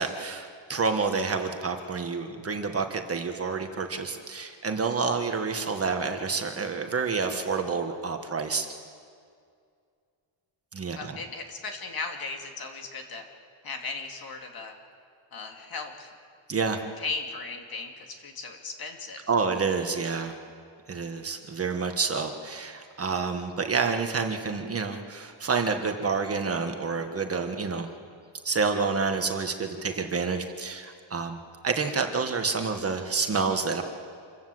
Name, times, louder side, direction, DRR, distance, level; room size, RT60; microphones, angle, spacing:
voice 1, 0.0-8.7 10.7-11.2 16.5-16.8 19.3-20.3 20.9-27.9 28.4-31.4 31.6-33.8, right 4 dB, 30° right, 5 dB, 1.5 m, -28 dB
voice 2, 10.9-13.2 13.6-14.7 15.3-16.1 17.0-19.2, left 4 dB, 50° left, 3 dB, 2.7 m, -37 dB
27.0 x 15.5 x 7.8 m, 2.2 s
cardioid pair, 150°, 47 cm